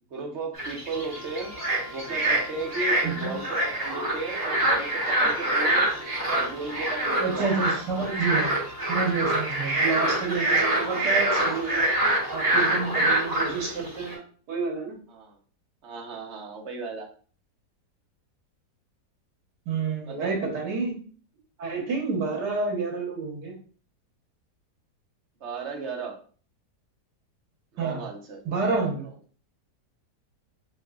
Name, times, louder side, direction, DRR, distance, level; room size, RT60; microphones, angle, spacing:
voice 1, 0.1-1.5 1.8-5.9 6.3-7.8 15.1-15.4 15.8-17.1 20.0-20.4 25.4-26.1 27.7-28.4 29.0-29.1, right 3 dB, 50° right, 1 dB, 1.0 m, -35 dB
sound 1, 0.5-14.1, right 1 dB, 10° right, 1.9 m, -26 dB
Wind instrument woodwind instrument, 0.9-10.0, left 2 dB, 90° left, 0.3 m, -46 dB
voice 2, 3.0-3.3 7.2-8.6 8.9-11.9 12.3-15.0 19.7-20.9 21.6-23.5 27.8-28.0 28.4-29.0, right 4 dB, 80° right, 0 dB, 1.8 m, -29 dB
6.2 x 2.8 x 2.3 m, 0.42 s
omnidirectional pair, 1.8 m